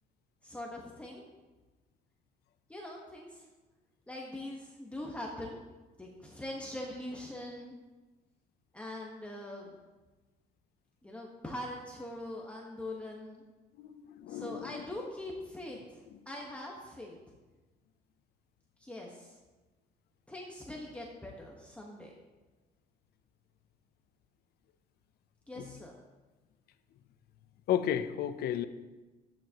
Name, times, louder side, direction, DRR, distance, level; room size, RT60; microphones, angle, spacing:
voice 1, 0.4-1.2 2.7-3.4 4.1-5.6 6.0-7.8 8.7-9.8 11.0-13.4 14.3-17.2 18.8-19.4 20.3-22.1 25.5-26.0, left 1 dB, 5° left, -2 dB, 1.3 m, -42 dB
voice 2, 13.8-14.9 25.6-25.7 27.7-28.7, left 10 dB, 70° left, 11 dB, 0.6 m, -33 dB
11.5 x 9.1 x 2.9 m, 1.2 s
cardioid pair, 110°, 17 cm